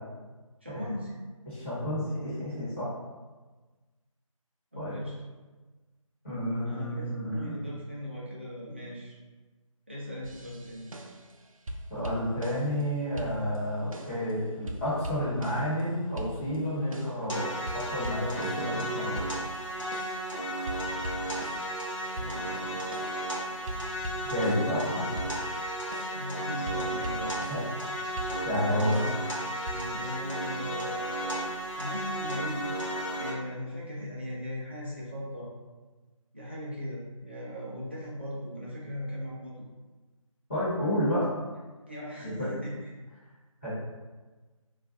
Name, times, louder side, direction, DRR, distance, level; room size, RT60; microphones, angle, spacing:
voice 1, 0.6-1.1 4.7-5.2 6.6-9.2 9.9-10.9 22.1-22.8 26.1-27.3 28.6-32.6 33.2-35.5 36.3-39.7 41.9-42.9, equal, 20° right, -6 dB, 0.4 m, -39 dB
voice 2, 1.5-2.9 4.7-5.0 6.2-7.5 11.9-17.5 17.9-19.2 24.2-25.1 27.5-27.7 28.4-29.0 40.5-41.3 42.2-42.5 43.6-43.7, equal, 25° left, -12 dB, 1.3 m, -30 dB
sound 1, 10.2-11.4 11.7-12.9 13.2-14.3 14.7-15.9 16.2-17.3 17.7-20.3 20.7-24.8 25.2-27.8 28.2-29.8, right 1 dB, 75° right, 0.4 m, -41 dB
sound 2, 17.3-33.3, right 1 dB, 65° left, 1.1 m, -34 dB
2.5 x 2.4 x 3.4 m, 1.3 s
figure-of-eight pair, 160°, 18 cm